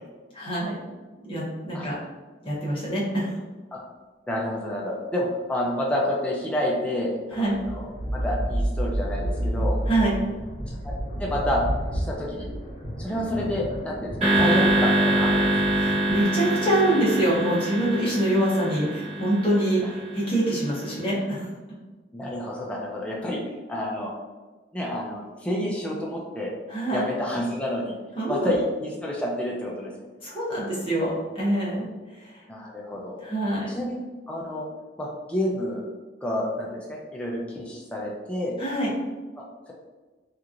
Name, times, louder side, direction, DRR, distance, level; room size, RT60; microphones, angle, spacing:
voice 1, 0.3-0.8 1.2-2.0 2.4-3.3 7.3-7.6 9.9-10.2 15.8-21.5 26.7-27.0 28.2-28.5 30.2-31.9 32.2-32.4 33.2-33.7 38.6-38.9, right 1 dB, 30° left, -7 dB, 0.9 m, -25 dB
voice 2, 4.3-7.9 8.1-9.8 10.8-10.9 11.2-11.6 11.9-12.5 13.0-15.4 22.1-23.4 23.7-24.1 24.7-26.5 26.9-27.9 28.3-29.9 32.5-33.2 33.7-34.0 34.3-34.7 35.0-35.8 36.2-38.5 39.7-39.8, left 1 dB, 5° left, -3 dB, 0.4 m, -29 dB
sound 1, 7.5-16.2, equal, 55° left, 1.3 m, -30 dB
sound 2, 14.2-20.6, right 1 dB, 35° right, 1.2 m, -24 dB
2.9 x 2.4 x 2.4 m, 1.3 s
head